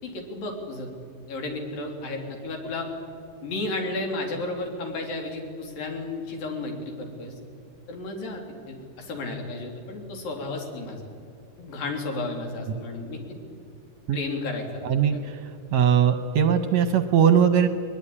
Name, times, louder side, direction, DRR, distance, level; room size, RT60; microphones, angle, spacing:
voice 1, 0.0-0.9 1.3-2.9 3.4-7.3 7.9-8.4 8.7-11.0 11.6-13.2 14.1-14.7 15.1-15.2, left 2 dB, 85° left, 2 dB, 5.1 m, -33 dB
voice 2, 14.8-15.4 15.7-17.7, right 8 dB, 70° right, 10 dB, 1.8 m, -20 dB
21.0 x 21.0 x 9.9 m, 2.3 s
omnidirectional pair, 3.9 m